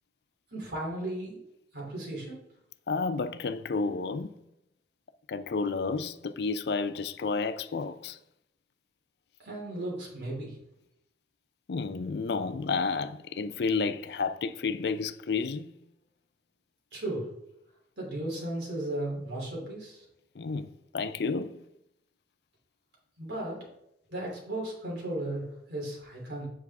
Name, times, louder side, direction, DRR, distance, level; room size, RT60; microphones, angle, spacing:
voice 1, 0.5-1.4 1.7-2.4 9.4-10.6 16.9-17.3 18.0-20.0 23.2-23.7 24.1-26.5, right 1 dB, 70° right, 3.1 m, -35 dB
voice 2, 2.9-4.3 5.3-8.2 11.7-15.7 20.4-21.6, left 4 dB, 65° left, 0.4 m, -31 dB
8.0 x 6.1 x 3.5 m
head